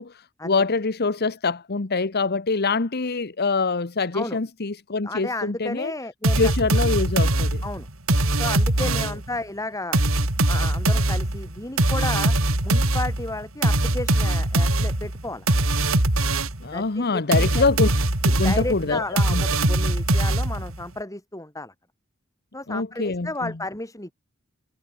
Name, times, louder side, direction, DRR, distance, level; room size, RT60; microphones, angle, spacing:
voice 1, 0.0-5.9 6.4-7.6 8.8-9.2 16.6-17.9 18.2-19.4 22.7-23.5, left 4 dB, 50° left, 1.1 m, -25 dB
voice 2, 5.0-6.5 7.6-7.9 8.4-10.0 10.5-12.4 12.6-15.5 16.7-17.7 18.4-21.7 22.5-24.1, left 2 dB, 15° left, 7.2 m, -33 dB
sound 1, 6.2-9.3 9.9-16.7 17.3-20.8, right 1 dB, 75° right, 3.6 m, -22 dB
head